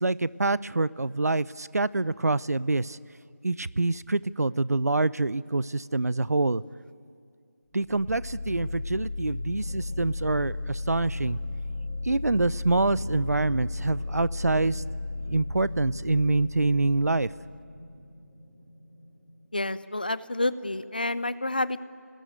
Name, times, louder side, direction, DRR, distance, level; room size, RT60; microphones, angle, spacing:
voice 1, 0.0-3.0 3.4-6.6 7.7-11.4 12.0-14.8 15.3-17.3, right 2 dB, 70° right, 19 dB, 0.6 m, -26 dB
sound 1, 7.7-19.6, left 2 dB, 5° right, 3.6 m, -35 dB
voice 2, 19.5-21.8, left 2 dB, 30° left, 16 dB, 0.6 m, -29 dB
29.5 x 19.5 x 9.2 m, 2.3 s
figure-of-eight pair, 175°, 9 cm